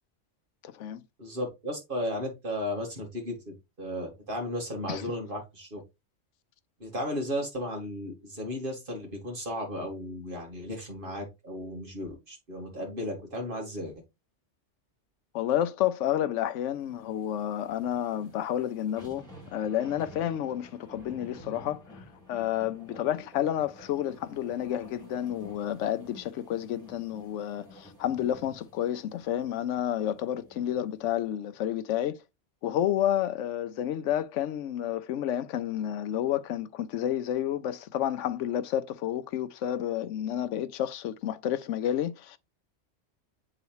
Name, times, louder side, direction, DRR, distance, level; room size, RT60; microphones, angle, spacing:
voice 1, 0.6-1.0 4.9-5.0 15.3-32.2 32.6-42.4, left 11 dB, 90° left, 0.9 m, -30 dB
voice 2, 1.2-5.8 6.8-13.9, equal, 45° right, 2.3 m, -35 dB
sound 1, 16.7-31.1 31.5-31.6, left 1 dB, 5° left, 3.5 m, -52 dB
8.0 x 3.9 x 3.1 m
omnidirectional pair, 1.2 m